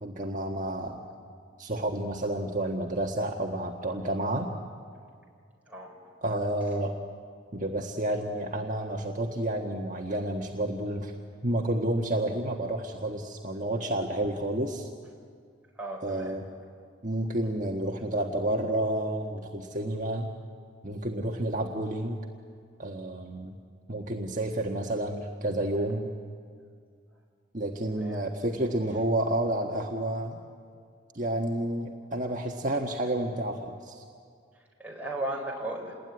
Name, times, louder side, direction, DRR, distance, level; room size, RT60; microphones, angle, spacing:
voice 1, 0.0-1.0 1.6-4.5 6.2-6.9 7.5-11.1 11.4-14.9 16.0-16.4 17.0-20.3 20.8-22.2 22.8-23.6 23.9-26.1 27.5-30.4 31.1-34.0, right 1 dB, 40° right, 1 dB, 1.5 m, -30 dB
voice 2, 5.7-6.0 6.7-6.8 15.7-16.3 27.9-28.2 34.5-35.9, right 1 dB, 10° right, -2 dB, 4.6 m, -36 dB
28.0 x 20.5 x 9.7 m, 2.2 s
head